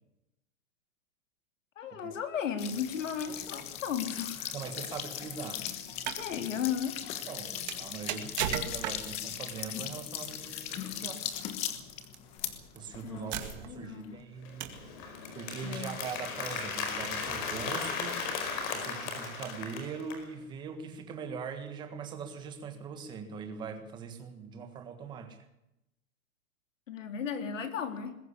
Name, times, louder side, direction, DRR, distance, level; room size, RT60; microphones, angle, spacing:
voice 1, 1.8-4.6 6.2-7.0 13.0-13.3 13.6-14.1 15.6-15.9 26.9-28.2, left 8 dB, 65° left, 7 dB, 3.8 m, -35 dB
sound 1, 2.6-14.2, left 10 dB, 15° left, 1.2 m, -39 dB
voice 2, 4.5-5.7 7.3-11.3 12.7-14.8 15.3-18.3 18.7-25.4, right 6 dB, 10° right, 7 dB, 1.5 m, -41 dB
sound 2, 5.9-6.3 7.7-9.2 10.5-10.8 12.0-12.2 12.8-12.9 13.3-13.9 14.6-14.9, right 10 dB, 30° right, 2.1 m, -35 dB
Applause, 14.4-20.2, left 5 dB, 35° left, 5.0 m, -36 dB
21.0 x 16.0 x 8.3 m, 0.87 s
hypercardioid pair, 175°, 42 cm